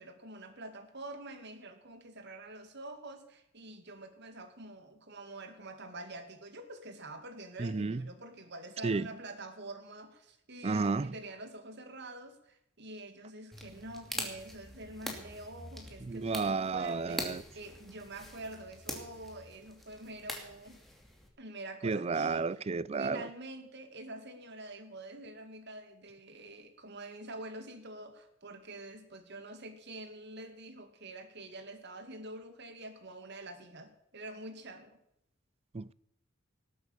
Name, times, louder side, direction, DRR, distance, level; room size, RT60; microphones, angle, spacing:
voice 1, 0.0-20.8 21.4-22.6 22.9-35.0, right 2 dB, 60° right, 2.2 m, -46 dB
voice 2, 7.6-8.0 8.8-9.0 10.6-11.1 16.1-17.4 21.8-23.3 35.7-35.9, right 4 dB, 30° right, 0.4 m, -32 dB
sound 1, 13.5-21.3, equal, ahead, 2.5 m, -44 dB
19.0 x 8.6 x 6.9 m
head